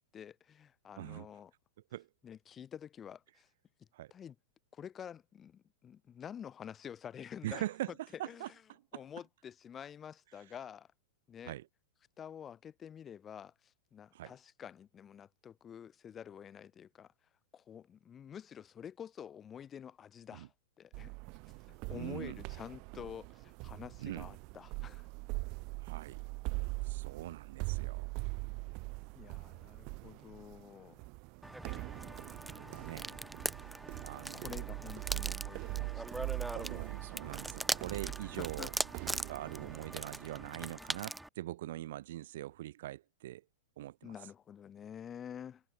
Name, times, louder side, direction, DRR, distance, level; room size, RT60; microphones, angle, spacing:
voice 1, 0.1-1.5 2.2-3.5 4.1-4.3 4.7-7.7 8.2-8.5 8.9-10.9 11.3-11.5 12.2-17.1 17.5-21.1 21.7-25.1 29.1-31.1 32.5-33.7 34.3-36.8 38.4-38.7 44.0-45.6, left 8 dB, 25° left, 6.2 m, -49 dB
voice 2, 7.4-7.9 8.2-9.0 11.4-11.7 14.1-14.3 20.3-20.5 21.9-22.4 24.0-24.3 25.8-26.2 26.8-28.1 32.5-33.1 34.0-34.5 36.5-38.7 39.0-43.4 43.8-44.2, right 14 dB, 65° right, 1.0 m, -43 dB
sound 1, 20.9-40.4, right 30 dB, 45° right, 2.8 m, -42 dB
sound 2, 31.4-41.3, right 1 dB, 5° right, 0.3 m, -41 dB
hypercardioid pair, 110°, 0 cm